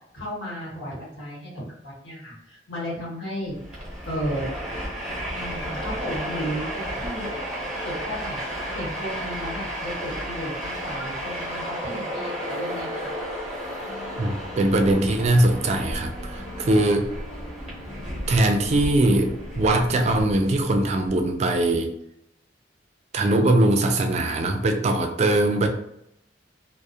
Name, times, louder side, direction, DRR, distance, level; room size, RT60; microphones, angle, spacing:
voice 1, 0.1-3.6 4.0-4.5 5.3-7.2 7.8-8.4 8.7-13.1, equal, 75° left, -5 dB, 1.1 m, -34 dB
Train, 3.5-21.1, equal, 5° right, 0.9 m, -33 dB
sound 1, 13.6-20.9, left 2 dB, 50° left, 0.8 m, -43 dB
voice 2, 14.2-17.1 18.3-21.9 23.1-25.7, right 1 dB, 40° right, 5 dB, 0.3 m, -21 dB
2.3 x 2.0 x 2.7 m, 0.77 s
head